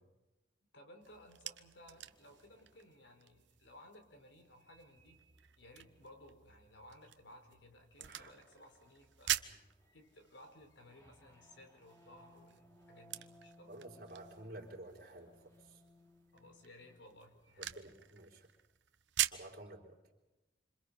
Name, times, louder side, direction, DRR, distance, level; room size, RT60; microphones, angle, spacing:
voice 1, 0.7-5.2 5.6-9.6 9.9-13.7 16.3-17.7, left 1 dB, 85° left, 5 dB, 4.6 m, -59 dB
sound 1, 1.0-19.6, right 12 dB, 85° right, 1.0 m, -45 dB
sound 2, 1.8-3.1 4.4-6.9 7.2-7.6 8.0-18.2, equal, 20° left, 3.2 m, -65 dB
voice 2, 13.7-15.8 17.6-18.5 19.3-20.0, right 1 dB, 55° right, 1 dB, 4.5 m, -52 dB
27.5 x 27.0 x 5.0 m, 1.1 s
head